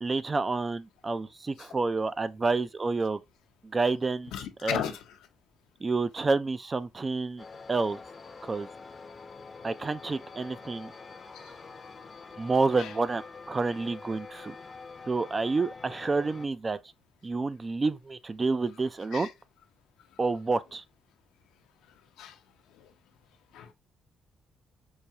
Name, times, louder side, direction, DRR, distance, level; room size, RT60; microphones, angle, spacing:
voice 1, 0.0-3.2 3.7-4.3 4.6-4.9 5.8-8.0 8.4-8.7 9.6-10.9 12.4-14.5 15.1-16.8 17.2-19.3 20.2-20.8, right 3 dB, 30° right, 0.3 m, -29 dB
voice 2, 4.3-5.0 12.8-12.9 19.1-19.3 22.2-22.3 23.5-23.7, left 9 dB, 90° left, 0.6 m, -34 dB
sound 1, 7.4-16.5, left 4 dB, 35° left, 0.5 m, -46 dB
4.6 x 2.3 x 2.7 m
cardioid pair, 90°, 0 cm